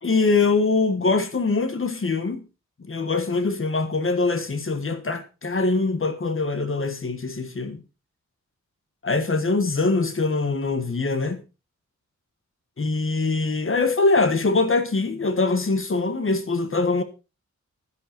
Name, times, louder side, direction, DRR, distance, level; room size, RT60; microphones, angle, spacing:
voice 1, 0.0-2.4 2.8-7.8 9.0-11.4 12.8-17.0, left 3 dB, 45° left, 1.6 m, -23 dB
12.0 x 10.5 x 4.4 m
wide cardioid pair, 130°, 30 cm